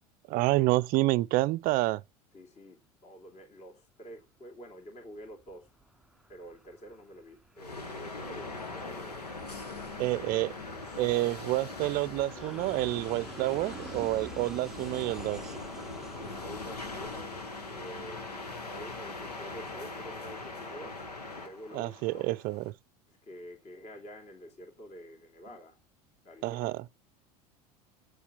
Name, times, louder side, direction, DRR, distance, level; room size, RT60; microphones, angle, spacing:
voice 1, 0.3-2.0 10.0-10.5 11.0-15.4 21.7-22.6 26.4-26.8, right 19 dB, 45° right, 0.5 m, -28 dB
voice 2, 2.3-5.7 6.3-9.2 9.9-10.1 16.2-17.4 17.7-21.0 21.3-22.4 23.1-25.8 26.2-26.6, equal, 35° left, 2.8 m, -48 dB
Aircraft, 5.0-18.2, right 2 dB, ahead, 0.6 m, -50 dB
sound 1, 7.6-22.7, left 3 dB, 90° left, 1.4 m, -41 dB
8.2 x 7.1 x 6.7 m
hypercardioid pair, 80°, 20 cm